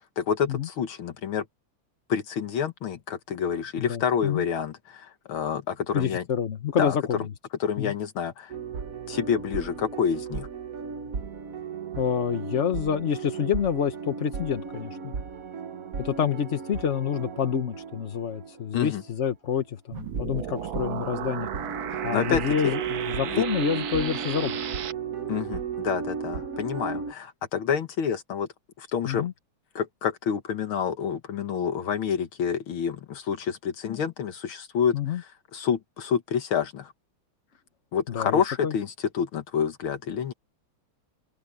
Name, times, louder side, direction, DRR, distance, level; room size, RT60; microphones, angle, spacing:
voice 1, 0.0-1.5 2.1-6.2 6.8-7.0 7.6-8.5 9.1-10.5 18.7-19.0 21.9-22.4 23.2-23.4 25.3-28.5 28.8-29.3 29.8-36.9 37.9-40.3, left 7 dB, 70° left, 2.1 m, -28 dB
voice 2, 3.8-4.4 5.9-7.3 7.8-7.9 12.0-15.1 16.0-21.5 21.8-24.6 29.0-29.3 34.9-35.2 38.1-38.7, left 8 dB, 45° left, 1.0 m, -28 dB
sound 1, 8.5-18.7 18.9-19.1 19.9-27.1, right 6 dB, 45° right, 1.4 m, -35 dB
sound 2, 19.9-24.9, right 8 dB, 65° right, 2.0 m, -35 dB
open air
omnidirectional pair, 2.4 m